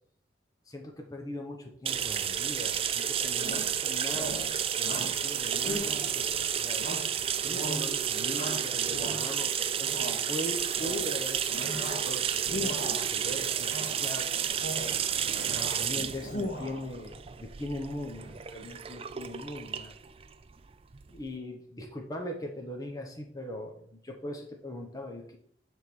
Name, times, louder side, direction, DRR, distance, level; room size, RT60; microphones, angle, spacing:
voice 1, 0.7-6.8 7.3-12.2 12.5-14.4 15.5-19.9 21.1-25.4, left 1 dB, 20° left, 2 dB, 1.0 m, -40 dB
sound 1, 1.8-21.3, right 9 dB, 30° right, 0.4 m, -31 dB
sound 2, 3.3-8.6 9.1-14.5, right 8 dB, 50° right, 1.4 m, -49 dB
Shout, 3.4-3.8 4.1-4.5 4.8-5.2 5.6-6.3 6.8-7.2 7.5-7.9 8.3-9.4 9.8-10.2 10.6-11.1 11.5-12.1 12.4-13.1 13.6-14.0 14.4-14.9 15.3-15.8 16.1-16.8, left 1 dB, 45° left, 1.7 m, -38 dB
10.0 x 3.6 x 6.2 m, 0.63 s
head